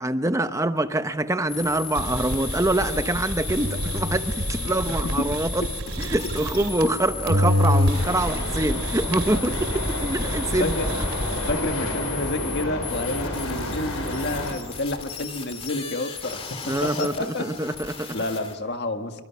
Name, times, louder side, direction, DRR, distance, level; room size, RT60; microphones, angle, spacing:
voice 1, 0.0-5.6 6.0-10.8 16.7-18.2, right 1 dB, 15° right, 10 dB, 0.8 m, -25 dB
sound 1, 1.5-18.5, left 6 dB, 25° left, 2.3 m, -36 dB
sound 2, 1.9-7.0 7.3-11.5, equal, 75° right, 2.5 m, -27 dB
voice 2, 4.6-5.3 6.0-6.2 6.8-6.9 9.3-9.4 10.6-10.9 11.5-17.5 18.1-19.2, left 2 dB, 50° left, 6 dB, 1.7 m, -29 dB
sound 3, 7.9-14.5, equal, 75° left, 6.8 m, -31 dB
26.5 x 24.5 x 6.0 m, 1.2 s
head